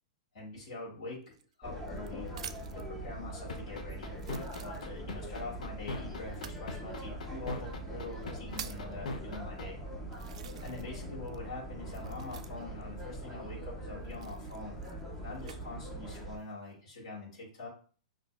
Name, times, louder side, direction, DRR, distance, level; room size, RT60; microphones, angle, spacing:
voice 1, 0.3-1.2 1.6-2.3 2.7-4.2 4.6-9.9 10.6-14.8 15.2-17.7, left 2 dB, 45° left, -5 dB, 1.8 m, -44 dB
sound 1, 1.2-2.9 3.6-3.7 4.1-5.2 6.3-6.6 7.5-7.6 8.1-8.9 9.6-9.7 10.1-11.0 11.3-12.8 14.0-15.6 16.2-16.7, right 9 dB, 60° right, 0.3 m, -48 dB
sound 2, 1.6-16.4, right 1 dB, 5° left, 0.5 m, -42 dB
sound 3, 3.5-9.6, left 3 dB, 85° left, 0.6 m, -39 dB
5.9 x 2.7 x 2.3 m, 0.39 s
supercardioid pair, 175°, 4 cm